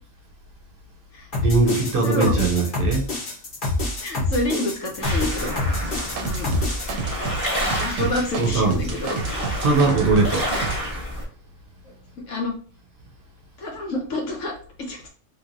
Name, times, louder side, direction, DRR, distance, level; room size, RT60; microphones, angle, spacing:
sound 1, 1.3-6.9, left 2 dB, 45° left, 1.1 m, -26 dB
voice 1, 1.4-3.1 8.0-8.9 9.6-10.5, right 3 dB, 50° right, 0.8 m, -21 dB
voice 2, 2.0-2.3 4.0-5.5 6.2-6.5 7.8-9.2 12.3-12.5 13.6-14.5 14.8-15.1, left 2 dB, 75° left, 1.3 m, -28 dB
sound 2, 5.0-11.2, equal, 15° left, 1.3 m, -29 dB
sound 3, 6.0-10.8, right 4 dB, 85° right, 1.0 m, -30 dB
3.2 x 3.0 x 2.5 m
omnidirectional pair, 1.3 m